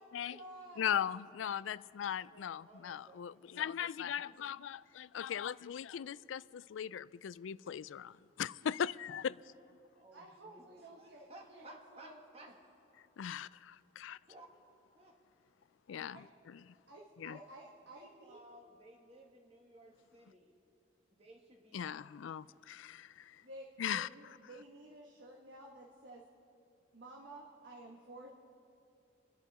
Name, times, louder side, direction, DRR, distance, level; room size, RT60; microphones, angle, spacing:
voice 1, 0.0-1.0 8.6-8.8 10.1-12.2 16.1-16.2 16.9-18.4 23.4-26.3 26.9-28.3, right 1 dB, 70° right, 1.5 m, -53 dB
voice 2, 0.8-8.1 8.4-9.3 13.2-14.2 15.9-16.2 17.2-17.4 21.7-23.1 23.8-24.1, left 9 dB, 85° left, 0.3 m, -38 dB
voice 3, 2.2-3.4 4.3-4.8 9.9-12.5 14.3-14.5 14.9-15.1 17.9-20.5 21.1-22.6, right 1 dB, 30° right, 1.7 m, -58 dB
27.5 x 10.5 x 4.2 m
head